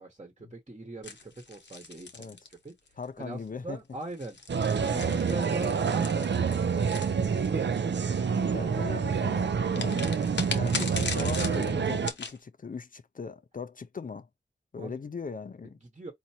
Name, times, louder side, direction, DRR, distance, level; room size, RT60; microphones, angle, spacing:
voice 1, 0.0-2.7 3.2-8.0 14.8-15.0 15.6-16.1, right 2 dB, 35° right, 1.1 m, -42 dB
sound 1, 1.0-3.0 4.0-7.8 9.7-12.4, left 4 dB, 70° left, 0.9 m, -38 dB
voice 2, 3.0-3.8 4.8-5.2 8.3-10.1 10.5-14.3 14.7-15.8, left 5 dB, 45° left, 0.4 m, -39 dB
sound 2, 4.5-12.1, right 6 dB, 70° right, 0.4 m, -27 dB
4.4 x 2.5 x 2.7 m
wide cardioid pair, 80°, 19 cm